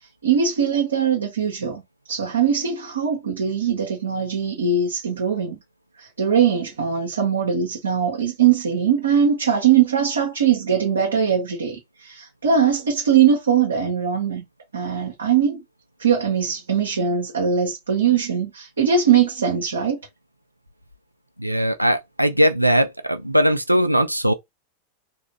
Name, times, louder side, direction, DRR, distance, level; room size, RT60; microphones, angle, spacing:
voice 1, 0.2-1.8 2.1-5.6 6.0-14.4 14.7-15.6 16.0-20.0, right 7 dB, 70° right, 0.8 m, -21 dB
voice 2, 21.4-24.3, equal, 90° right, 0.3 m, -19 dB
3.0 x 2.5 x 3.0 m
figure-of-eight pair, 90°, 0 cm